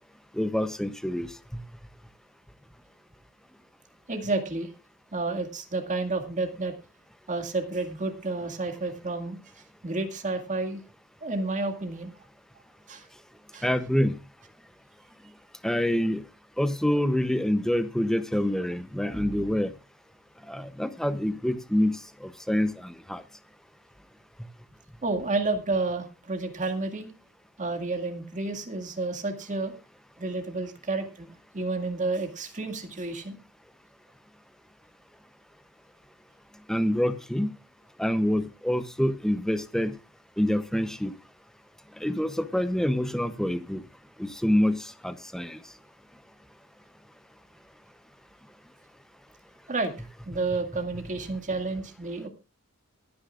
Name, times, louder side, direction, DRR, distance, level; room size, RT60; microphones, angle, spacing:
voice 1, 0.3-1.6 13.6-14.2 15.6-16.2 16.6-19.7 20.5-23.2 36.7-37.5 38.0-39.9 40.4-41.1 42.0-43.8 44.2-45.6, left 1 dB, ahead, 11 dB, 0.7 m, -26 dB
voice 2, 4.1-4.7 5.1-6.8 7.3-10.8 11.2-12.2 12.9-13.1 13.5-13.7 25.0-27.1 27.6-29.7 30.2-33.4 49.7-52.3, right 3 dB, 35° right, 5 dB, 2.1 m, -30 dB
23.0 x 9.6 x 2.4 m, 0.28 s
head